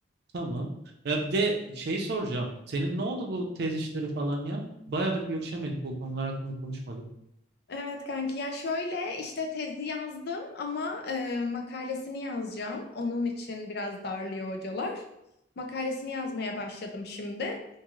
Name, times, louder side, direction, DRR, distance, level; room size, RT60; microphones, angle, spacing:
voice 1, 0.3-0.7 1.0-7.0, right 2 dB, 60° right, 1 dB, 0.5 m, -31 dB
voice 2, 7.7-15.0 15.6-17.6, left 3 dB, 60° left, 3 dB, 0.5 m, -33 dB
3.0 x 2.6 x 2.4 m, 0.82 s
head